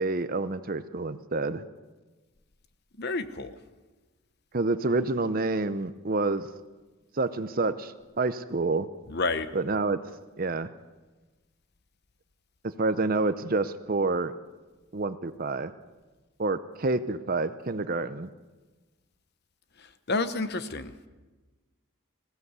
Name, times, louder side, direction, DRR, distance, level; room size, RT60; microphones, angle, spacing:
voice 1, 0.0-1.6 4.5-6.5 7.1-8.9 9.5-10.0 10.4-10.7 12.8-14.3 14.9-15.7 16.4-18.3, right 3 dB, 40° right, 12 dB, 0.7 m, -28 dB
voice 2, 3.0-3.5 9.1-9.5 20.1-20.9, left 3 dB, 50° left, 11 dB, 1.0 m, -29 dB
20.5 x 16.0 x 8.2 m, 1.2 s
head